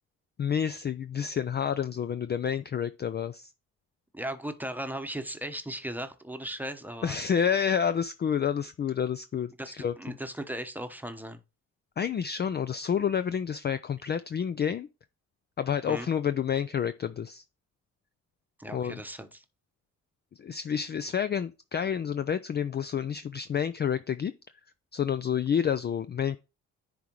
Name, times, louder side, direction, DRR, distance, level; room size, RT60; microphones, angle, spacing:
voice 1, 0.4-3.5 7.0-9.9 12.0-14.9 15.6-17.4 18.7-19.0 20.4-24.3 24.9-26.4, left 8 dB, 30° left, 0.4 m, -29 dB
voice 2, 4.1-7.2 9.6-11.4 15.9-16.1 18.6-19.4, right 1 dB, 5° right, 1.0 m, -37 dB
10.0 x 3.7 x 3.0 m
hypercardioid pair, 50°, 36 cm